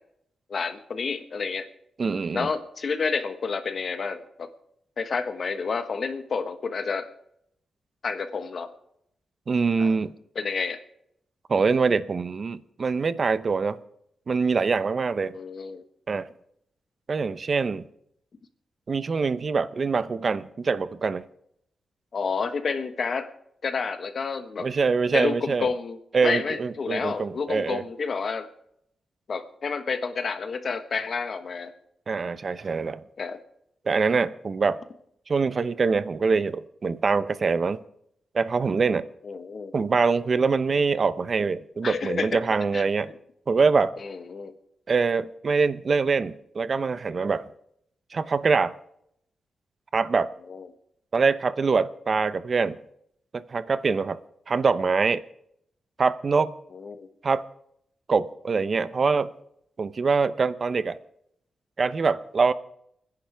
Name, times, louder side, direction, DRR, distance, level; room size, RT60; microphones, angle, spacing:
voice 1, 0.5-1.7 2.3-4.5 5.0-7.1 8.0-8.7 9.8-9.9 10.3-10.8 15.3-15.8 22.1-23.3 23.6-24.7 25.1-26.0 26.2-28.5 29.3-31.7 33.2-33.4 39.2-39.7 41.8-42.4 42.7-42.8 44.0-44.5 50.5-50.7 56.7-57.1, left 5 dB, 45° left, 8 dB, 1.4 m, -29 dB
voice 2, 2.0-2.5 9.5-10.1 11.5-13.8 14.3-15.4 16.1-16.3 17.1-17.8 18.9-21.2 24.6-25.7 26.1-27.8 32.1-33.0 33.9-34.8 35.3-37.8 38.3-39.1 39.7-43.1 43.5-43.9 44.9-47.5 48.1-48.7 49.9-50.3 51.1-52.8 53.3-54.2 54.5-55.2 56.0-56.5 57.2-57.4 58.1-59.3 59.8-61.0 61.8-62.5, right 4 dB, 40° right, 13 dB, 0.7 m, -24 dB
29.5 x 10.5 x 3.5 m, 0.74 s
wide cardioid pair, 140°, 0 cm